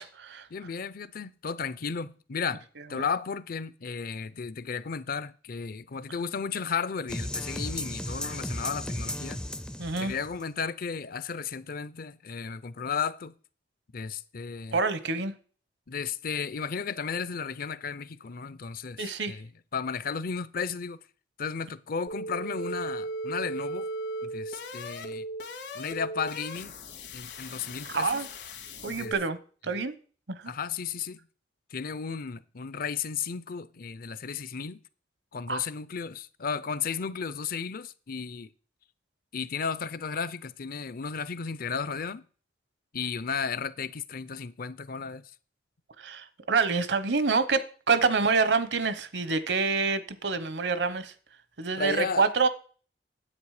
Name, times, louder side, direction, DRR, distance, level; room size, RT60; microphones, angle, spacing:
voice 1, 0.0-0.5 2.9-3.0 9.8-10.2 14.7-15.3 19.0-19.4 27.9-28.3 28.8-29.4 29.6-29.9 30.3-30.5 35.5-35.6 46.0-51.1 51.6-52.5, right 4 dB, 75° right, 1.0 m, -27 dB
voice 2, 0.5-2.6 2.9-9.4 10.0-13.3 13.9-14.8 15.9-21.0 21.4-23.9 24.2-25.2 25.7-26.7 27.1-28.2 28.8-29.1 30.5-31.2 31.7-34.8 35.3-38.5 39.3-42.2 42.9-45.2 51.8-52.3, left 6 dB, 55° left, 0.6 m, -34 dB
sound 1, 7.1-10.4, left 1 dB, 5° left, 0.4 m, -35 dB
sound 2, 22.1-29.1, right 1 dB, 75° left, 2.1 m, -37 dB
9.8 x 8.1 x 4.9 m
head